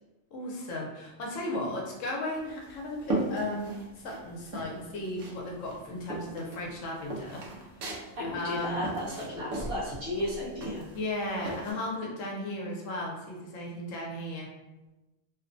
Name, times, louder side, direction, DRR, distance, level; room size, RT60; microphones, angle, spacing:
voice 1, 0.3-3.7 3.9-7.9 8.2-8.8 10.9-14.5, left 1 dB, 75° left, -2 dB, 1.0 m, -35 dB
sound 1, 2.3-4.2 4.5-5.4 5.6-11.7, right 2 dB, 80° right, 1.0 m, -36 dB
voice 2, 8.2-10.8, left 1 dB, 50° right, -9 dB, 1.1 m, -34 dB
2.8 x 2.1 x 2.5 m, 1.0 s
omnidirectional pair, 1.3 m